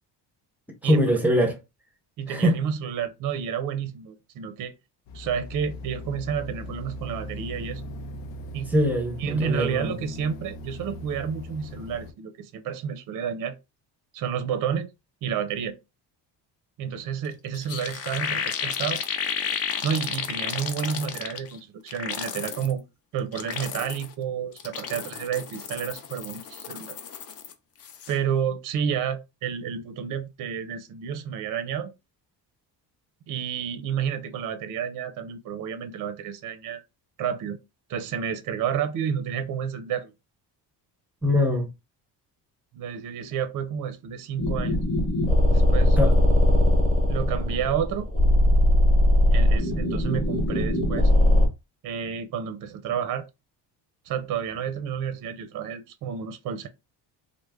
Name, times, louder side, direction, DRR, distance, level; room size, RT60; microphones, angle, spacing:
voice 1, 0.8-1.6 2.3-2.6 8.7-9.9 41.2-41.7 46.0-46.1, equal, 5° right, 0.6 m, -22 dB
voice 2, 2.2-4.7 5.1-7.9 8.5-8.7 9.2-13.6 14.1-14.9 15.2-15.8 16.8-19.0 19.8-22.8 23.1-27.0 28.1-31.9 33.3-36.8 37.2-37.6 37.9-40.1 42.7-44.8 45.5-46.0 47.0-48.1 49.3-51.1 51.8-53.3 54.0-56.7, right 8 dB, 50° right, 0.5 m, -30 dB
sound 1, 5.1-12.1, left 1 dB, 80° left, 0.7 m, -39 dB
sound 2, 17.2-17.3 17.5-21.6 21.9-22.7 23.2-24.1 24.5-27.5 27.8-28.1, left 7 dB, 35° left, 0.4 m, -32 dB
sound 3, 44.4-51.5, left 1 dB, 15° left, 1.0 m, -20 dB
3.1 x 2.1 x 3.5 m
cardioid pair, 160°, 43 cm